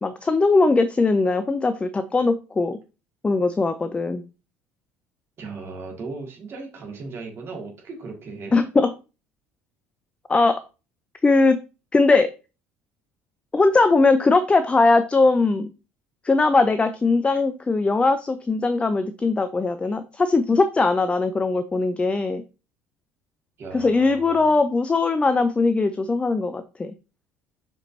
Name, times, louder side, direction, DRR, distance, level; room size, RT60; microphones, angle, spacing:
voice 1, 0.0-2.8 3.2-4.2 8.5-8.9 10.3-10.6 11.2-11.6 11.9-12.3 13.5-15.7 16.2-22.4 23.7-26.9, left 3 dB, 15° left, 11 dB, 0.5 m, -20 dB
voice 2, 5.4-8.6 19.8-19.9 23.6-24.5, right 3 dB, 40° right, 0 dB, 2.5 m, -37 dB
7.2 x 5.0 x 2.8 m, 0.31 s
figure-of-eight pair, 60°, 6 cm